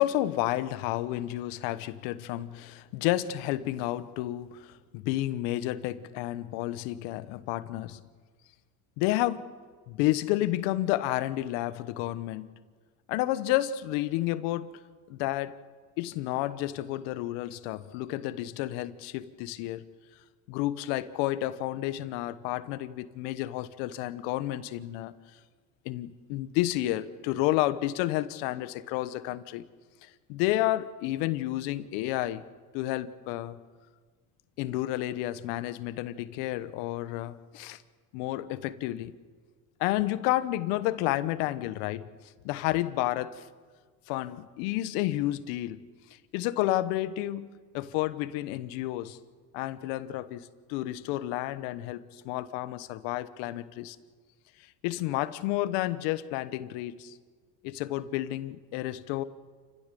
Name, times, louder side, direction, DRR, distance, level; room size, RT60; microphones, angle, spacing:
voice 1, 0.0-8.0 9.0-9.5 9.9-12.5 13.1-14.7 15.1-15.6 16.0-19.8 20.5-25.1 25.8-29.6 30.0-32.4 32.7-33.6 34.6-37.8 38.1-39.1 39.8-42.1 42.4-43.4 44.1-45.8 46.3-49.2 49.5-54.0 54.8-57.1 57.6-59.2, left 15 dB, 75° left, 1.2 m, -31 dB
29.0 x 15.5 x 6.9 m
supercardioid pair, 85°, 44 cm